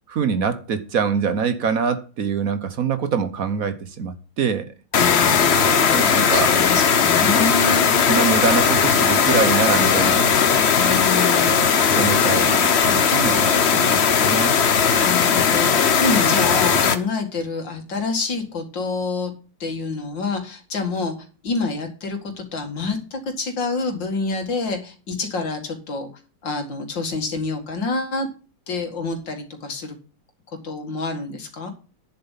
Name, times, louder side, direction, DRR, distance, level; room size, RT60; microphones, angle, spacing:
voice 1, 0.1-4.7 5.9-6.5 7.2-7.5 8.0-10.3 10.8-11.0 11.5-11.6 11.8-14.6, right 6 dB, 55° right, 1.3 m, -24 dB
voice 2, 4.9-8.0 10.8-11.7 15.0-19.3 19.6-21.2 21.4-26.1 26.4-28.3 28.7-30.0 30.6-31.7, left 3 dB, 85° left, 2.7 m, -27 dB
sound 1, 4.9-17.0, left 6 dB, 45° left, 1.0 m, -18 dB
10.0 x 7.4 x 5.7 m
omnidirectional pair, 1.9 m